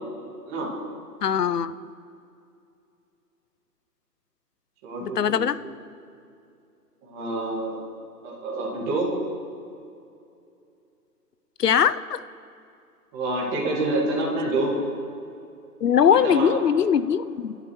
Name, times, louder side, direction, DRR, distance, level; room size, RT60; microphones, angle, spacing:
voice 1, 1.2-1.7 5.0-5.6 11.6-12.2 15.8-17.6, left 8 dB, 70° left, 15 dB, 0.8 m, -21 dB
voice 2, 4.8-5.7 7.0-7.8 8.2-9.1 13.1-14.8 16.1-16.5, right 2 dB, 10° right, -4 dB, 2.0 m, -27 dB
29.0 x 11.5 x 3.2 m, 2.6 s
hypercardioid pair, 165°, 49 cm